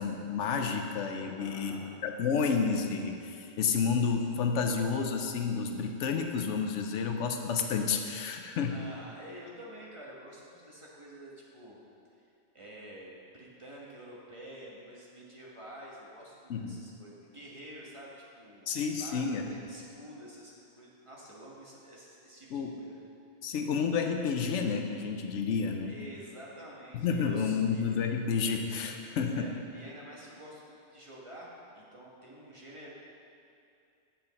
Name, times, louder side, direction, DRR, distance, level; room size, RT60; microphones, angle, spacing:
voice 1, 0.0-8.8 16.5-16.8 18.7-19.4 22.5-22.8 23.4-25.9 26.9-29.5, left 5 dB, 90° left, 5 dB, 1.0 m, -30 dB
voice 2, 1.4-2.0 8.7-11.8 12.2-12.3 12.5-23.0 25.8-27.9 29.2-32.9, equal, 30° right, -5 dB, 1.2 m, -48 dB
7.8 x 7.1 x 4.1 m, 2.6 s
omnidirectional pair, 1.2 m